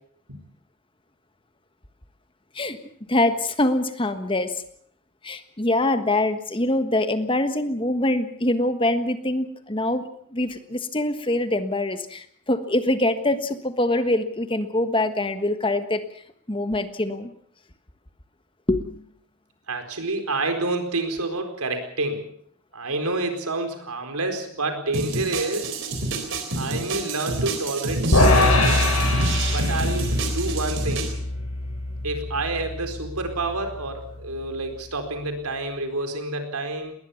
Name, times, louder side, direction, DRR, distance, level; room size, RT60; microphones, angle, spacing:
voice 1, 3.1-4.5 5.2-10.0 10.3-16.0 16.5-17.3 18.7-19.0, left 1 dB, 25° left, 10 dB, 1.4 m, -24 dB
voice 2, 19.7-22.3 22.7-25.8 26.6-28.9 29.5-31.1 32.0-36.9, right 2 dB, 90° right, 6 dB, 4.4 m, -28 dB
sound 1, 24.9-31.1, right 2 dB, 55° right, 3.9 m, -28 dB
sound 2, 28.1-34.5, left 2 dB, 75° left, 7.3 m, -23 dB
20.5 x 20.0 x 7.2 m, 0.64 s
head